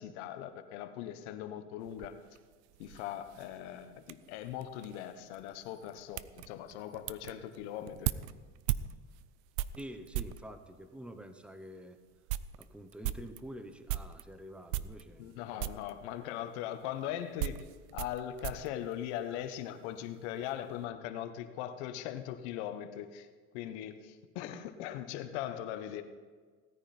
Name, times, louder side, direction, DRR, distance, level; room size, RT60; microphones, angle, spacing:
voice 1, 0.0-2.2 2.8-8.1 15.2-17.7 17.9-23.3 23.5-26.0, left 11 dB, 70° left, 9 dB, 1.1 m, -40 dB
sound 1, 1.8-10.5 11.2-11.3 11.7-11.8 12.1-14.3 14.7-15.3 15.6-16.0 16.8-19.7 20.0-20.5, right 14 dB, 75° right, 0.6 m, -39 dB
voice 2, 9.7-12.0 12.6-15.7 19.3-19.4, equal, 5° right, 9 dB, 0.9 m, -47 dB
17.0 x 9.8 x 4.3 m, 1.5 s
supercardioid pair, 100°, 34 cm